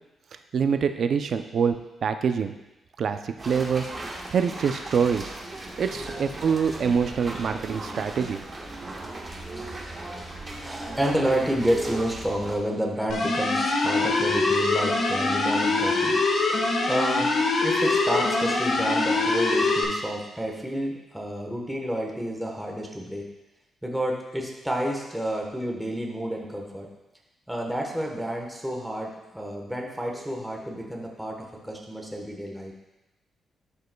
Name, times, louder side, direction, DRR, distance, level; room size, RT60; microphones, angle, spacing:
voice 1, 0.5-2.5 3.0-3.9 4.3-5.3 5.8-8.4 8.8-8.9, right 6 dB, 60° right, 8 dB, 0.5 m, -25 dB
sound 1, 3.4-12.5, right 2 dB, 30° right, 1.3 m, -37 dB
voice 2, 5.9-6.2 9.6-10.1 10.6-16.1 16.9-17.3 17.6-23.2 23.8-26.9 27.5-32.7, equal, 5° right, -1 dB, 1.2 m, -30 dB
sound 2, 13.1-19.8, left 3 dB, 60° left, 1.2 m, -23 dB
11.5 x 5.4 x 2.3 m, 0.96 s
cardioid pair, 105°, 0 cm